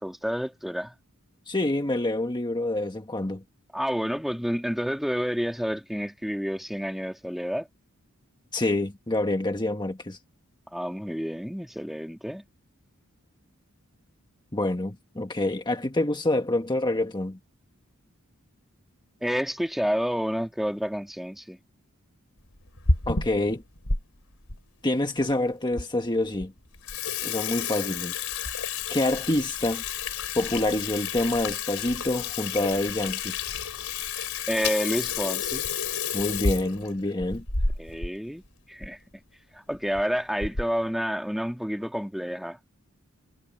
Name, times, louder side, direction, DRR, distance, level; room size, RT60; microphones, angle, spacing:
voice 1, 0.0-0.9 3.7-7.7 10.7-12.4 19.2-21.6 34.5-35.6 37.8-38.4 38.7-39.0 39.5-42.6, equal, ahead, 2.1 m, -29 dB
voice 2, 1.5-3.4 8.5-10.2 14.5-17.4 23.1-23.6 24.8-26.5 27.2-28.2 28.9-29.8 30.3-33.3 36.1-37.4, left 1 dB, 20° left, 1.5 m, -27 dB
Water tap faucet / Sink (filling or washing), 22.6-24.0 24.5-24.6 25.3-25.4 25.8-25.9 26.2-26.4 26.7-38.1 38.4-38.5 38.8-38.9 39.7-40.0 40.4-40.8, left 4 dB, 70° left, 4.5 m, -30 dB
head